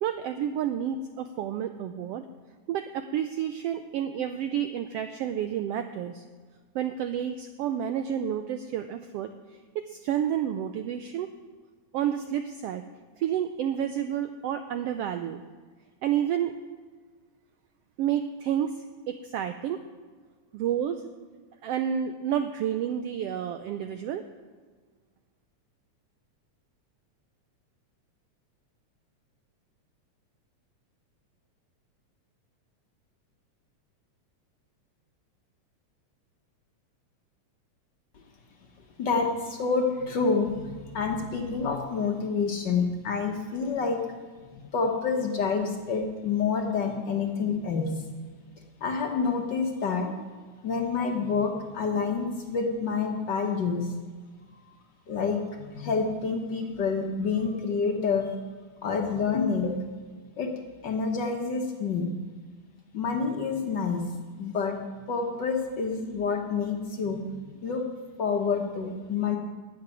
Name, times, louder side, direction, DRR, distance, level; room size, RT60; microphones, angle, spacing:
voice 1, 0.0-2.2 2.7-6.2 6.7-9.3 9.7-11.3 11.9-12.8 13.2-15.4 16.0-16.5 18.0-18.7 19.1-19.8 20.5-21.0 21.6-24.2, right 9 dB, 85° right, 8 dB, 1.3 m, -30 dB
voice 2, 39.0-44.0 44.5-47.9 48.8-50.1 50.6-53.9 55.1-58.3 58.8-59.8 60.4-60.5 60.8-62.1 62.9-64.0 64.4-64.8 65.1-67.8 68.2-69.4, left 5 dB, 60° left, 3 dB, 1.2 m, -28 dB
10.5 x 8.0 x 9.6 m, 1.5 s
omnidirectional pair, 3.4 m